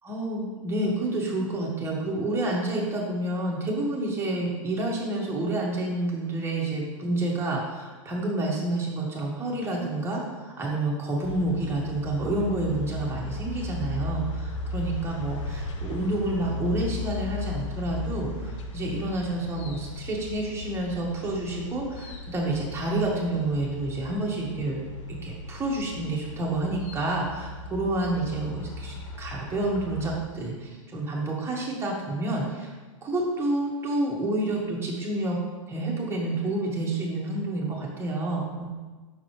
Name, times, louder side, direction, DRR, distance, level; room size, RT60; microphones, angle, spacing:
voice 1, 0.0-24.8 25.1-32.7 33.0-35.4 35.7-38.8, right 2 dB, 15° right, -3 dB, 1.9 m, -29 dB
sound 1, 11.2-30.2, left 2 dB, 60° left, 0.9 m, -36 dB
7.1 x 6.0 x 3.4 m, 1.3 s
hypercardioid pair, 105°, 17 cm